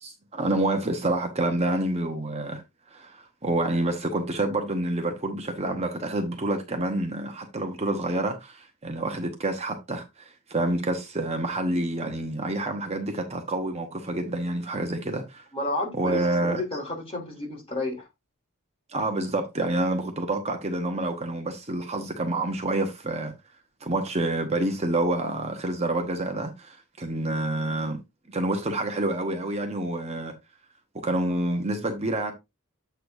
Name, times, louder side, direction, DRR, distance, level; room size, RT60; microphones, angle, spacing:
voice 1, 0.0-2.6 2.9-15.4 16.0-16.6 18.9-23.3 23.8-28.0 28.3-30.3 30.9-32.3, right 2 dB, 30° right, 1.0 m, -28 dB
voice 2, 15.5-18.0, left 2 dB, 25° left, 3.0 m, -31 dB
8.0 x 6.7 x 2.6 m
head